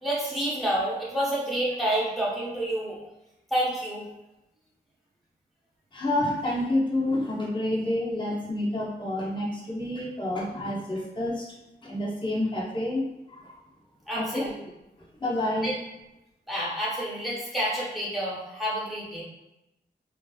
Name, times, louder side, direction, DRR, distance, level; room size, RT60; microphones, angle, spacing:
voice 1, 0.0-3.0 3.5-4.1 14.1-14.6 15.6-15.7 16.5-19.2, right 1 dB, ahead, -7 dB, 1.0 m, -29 dB
voice 2, 5.9-11.5 11.8-13.5 14.1-14.5 15.2-15.7, left 1 dB, 30° left, -4 dB, 0.7 m, -28 dB
3.1 x 2.5 x 2.3 m, 0.93 s
wide cardioid pair, 125°, 17 cm